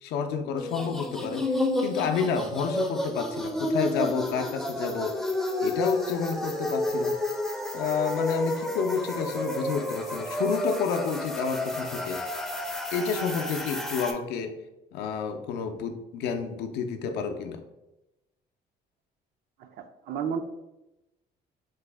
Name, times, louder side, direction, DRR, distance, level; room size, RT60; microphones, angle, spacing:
voice 1, 0.0-5.2 5.6-7.2 7.7-12.3 12.9-14.6 14.9-17.6, left 6 dB, 80° left, 6 dB, 0.4 m, -30 dB
sound 1, 0.6-14.1, left 1 dB, 5° left, 0.4 m, -31 dB
voice 2, 19.6-20.4, right 7 dB, 65° right, 8 dB, 0.4 m, -32 dB
3.9 x 2.0 x 3.3 m, 0.96 s
cardioid pair, 110°, 17 cm